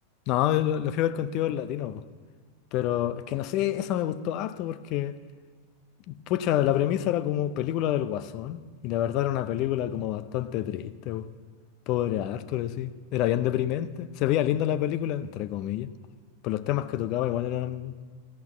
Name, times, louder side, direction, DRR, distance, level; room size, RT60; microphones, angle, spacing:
voice 1, 0.3-2.0 2.7-5.2 6.1-11.3 11.9-15.9 16.4-17.9, left 12 dB, 40° left, 0.5 m, -28 dB
15.0 x 5.9 x 7.2 m
figure-of-eight pair, 90°, 0 cm